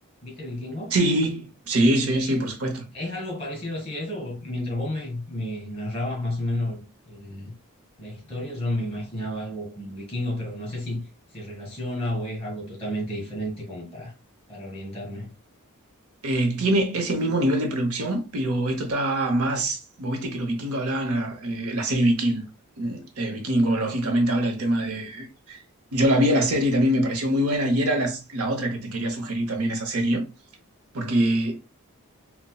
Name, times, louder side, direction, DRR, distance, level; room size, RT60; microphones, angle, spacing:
voice 1, 0.2-1.0 2.2-2.5 2.9-7.6 8.0-14.1 14.5-15.3, left 1 dB, 25° left, 1.6 m, -32 dB
voice 2, 0.9-2.8 16.2-22.4 22.8-25.6 25.9-30.2 30.9-31.6, right 1 dB, 75° right, 0.8 m, -24 dB
4.1 x 2.1 x 2.2 m
head